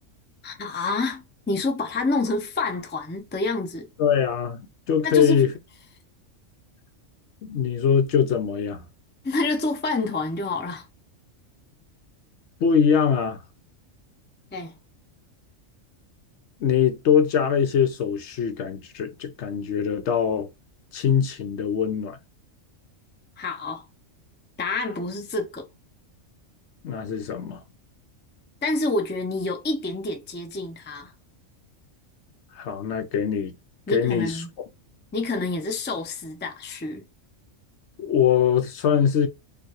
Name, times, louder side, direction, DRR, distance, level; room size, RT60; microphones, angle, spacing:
voice 1, 0.4-3.9 5.0-5.4 9.2-10.9 14.5-14.8 23.4-23.8 24.6-25.7 28.6-31.1 33.9-34.5 35.1-37.0, left 2 dB, 15° left, 0.5 m, -28 dB
voice 2, 4.0-4.6 4.9-5.5 7.4-8.9 12.6-13.4 16.6-20.5 20.9-22.2 26.8-27.6 32.5-33.6 33.9-34.4 38.0-39.3, left 7 dB, 65° left, 0.9 m, -22 dB
4.4 x 2.6 x 3.0 m
omnidirectional pair, 1.3 m